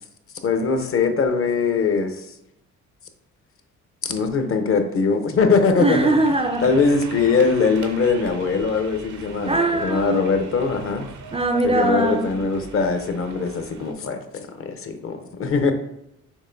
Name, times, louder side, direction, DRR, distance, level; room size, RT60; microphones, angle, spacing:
voice 1, 0.4-2.2 4.0-6.1 6.6-11.1 11.6-15.7, left 4 dB, 45° left, 0.7 m, -21 dB
voice 2, 5.8-6.7 9.5-10.2 11.3-12.3, right 2 dB, 20° right, 0.3 m, -21 dB
sound 1, 6.0-13.9, right 5 dB, 75° right, 0.7 m, -41 dB
6.4 x 3.0 x 2.6 m
cardioid pair, 90°, 30 cm